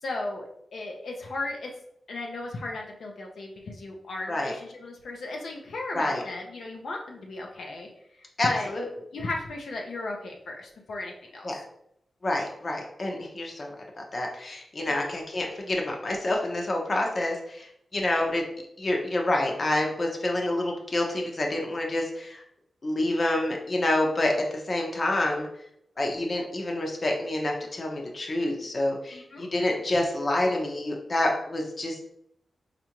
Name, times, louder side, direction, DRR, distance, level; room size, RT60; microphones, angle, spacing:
voice 1, 0.0-1.7 2.1-8.7 9.1-11.5 14.9-15.1 29.1-29.5, left 2 dB, 75° left, 0 dB, 0.5 m, -35 dB
voice 2, 8.4-8.9 11.4-11.6 12.2-13.7 14.0-18.4 18.8-22.4 22.8-24.3 24.7-25.5 26.0-32.0, left 1 dB, 40° left, 1 dB, 0.7 m, -28 dB
4.3 x 2.5 x 2.9 m, 0.75 s
wide cardioid pair, 120°, 0 cm